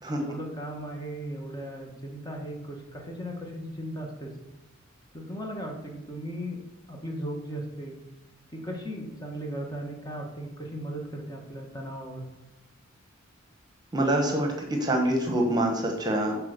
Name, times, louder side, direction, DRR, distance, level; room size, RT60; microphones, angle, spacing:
voice 1, 0.2-4.3 5.1-6.6 6.9-8.0 8.5-12.2, equal, 20° left, 1 dB, 1.7 m, -37 dB
voice 2, 13.9-16.4, right 1 dB, 20° right, 2 dB, 1.4 m, -25 dB
8.1 x 4.8 x 6.9 m, 1.0 s
head